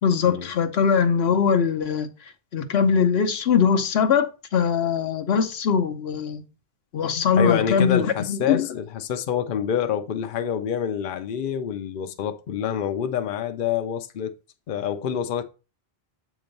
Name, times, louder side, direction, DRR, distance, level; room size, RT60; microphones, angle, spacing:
voice 1, 0.0-2.1 2.5-6.4 6.9-8.7, left 6 dB, 80° left, 1.0 m, -21 dB
voice 2, 7.4-14.3 14.7-15.4, left 8 dB, 60° left, 0.7 m, -27 dB
7.8 x 3.0 x 5.2 m
omnidirectional pair, 1.0 m